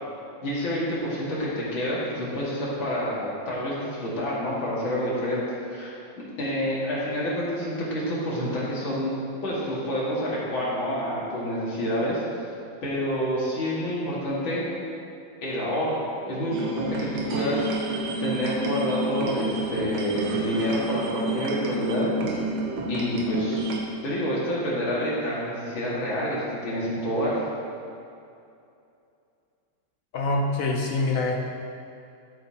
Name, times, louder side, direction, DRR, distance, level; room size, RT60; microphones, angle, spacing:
voice 1, 0.4-5.9 6.2-12.4 12.8-14.6 15.4-22.1 22.9-23.8 24.0-27.5, equal, 75° left, -7 dB, 2.8 m, -28 dB
sound 1, 16.5-23.8, right 2 dB, 60° right, 1.5 m, -29 dB
voice 2, 30.1-31.4, left 2 dB, 60° left, 0 dB, 0.9 m, -25 dB
12.0 x 7.9 x 2.9 m, 2.6 s
omnidirectional pair, 2.1 m